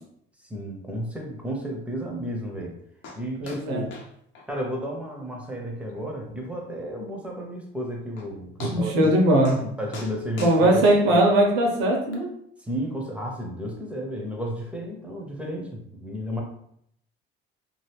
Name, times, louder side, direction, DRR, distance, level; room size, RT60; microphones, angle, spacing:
voice 1, 0.4-2.8 3.2-3.9 4.5-9.1 9.4-10.9 12.6-16.4, equal, 5° right, 0 dB, 0.7 m, -33 dB
sound 1, 3.0-3.2 3.5-3.6 3.9-4.1 4.3-4.5 4.9-5.0 5.4-5.5 5.9-6.0 7.7-7.8 8.2-8.3 8.6-9.2 9.4-9.6 9.9-11.4 12.1-12.2, left 3 dB, 65° left, 0.8 m, -41 dB
voice 2, 3.4-3.8 8.6-9.6 10.4-12.3, right 1 dB, 90° right, 0 dB, 0.9 m, -20 dB
2.8 x 2.5 x 3.3 m, 0.71 s
cardioid pair, 115°, 21 cm